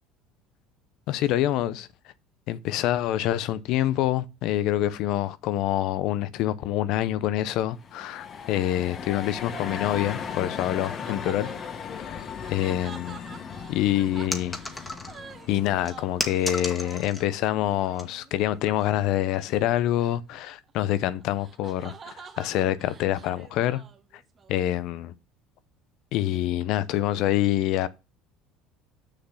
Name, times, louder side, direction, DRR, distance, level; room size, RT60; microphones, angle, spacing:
voice 1, 1.1-1.9 2.5-11.5 12.0-12.2 12.5-13.2 13.7-14.6 15.5-23.8 24.5-25.1 26.1-27.9, left 13 dB, 65° left, 0.6 m, -26 dB
sound 1, 7.7-16.4, left 7 dB, 45° left, 1.2 m, -37 dB
sound 2, 9.2-18.4 19.3-19.7 20.0-24.6, right 6 dB, 35° right, 1.3 m, -48 dB
sound 3, 14.3-15.3 15.8-17.4 17.7-18.0 18.7-18.9, left 2 dB, 15° left, 1.7 m, -34 dB
6.7 x 5.9 x 5.6 m
supercardioid pair, 85°, 0 cm